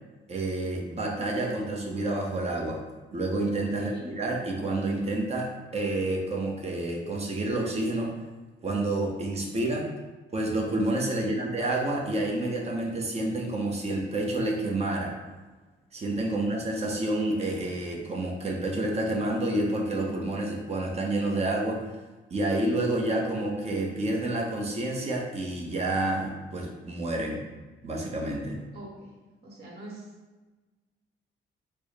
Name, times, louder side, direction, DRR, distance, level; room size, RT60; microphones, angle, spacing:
voice 1, 0.3-2.8 3.1-8.1 8.6-9.9 10.3-15.1 15.9-21.8 22.3-27.4 27.8-28.6, right 2 dB, 30° right, 0 dB, 0.8 m, -29 dB
voice 2, 3.8-4.1 11.2-11.4 28.7-29.1 29.4-30.1, right 1 dB, 55° right, -3 dB, 1.2 m, -42 dB
4.4 x 2.0 x 3.3 m, 1.2 s
cardioid pair, 90°, 20 cm